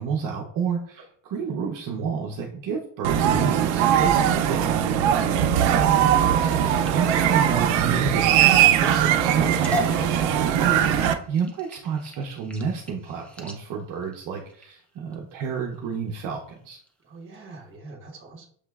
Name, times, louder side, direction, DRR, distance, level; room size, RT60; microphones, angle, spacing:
voice 1, 0.0-4.7 6.1-10.3 10.6-16.8, right 6 dB, 50° right, -1 dB, 0.7 m, -30 dB
sound 1, 3.0-11.1, right 10 dB, 90° right, 0.5 m, -20 dB
sound 2, 6.0-11.2, equal, 40° left, 1.2 m, -41 dB
sound 3, 6.8-15.1 15.7-16.1 16.5-16.9 17.3-17.4 17.7-17.8, left 1 dB, 5° left, 0.3 m, -38 dB
voice 2, 17.1-18.5, right 2 dB, 30° right, 0 dB, 1.1 m, -43 dB
6.5 x 3.0 x 2.3 m, 0.62 s
cardioid pair, 145°, 42 cm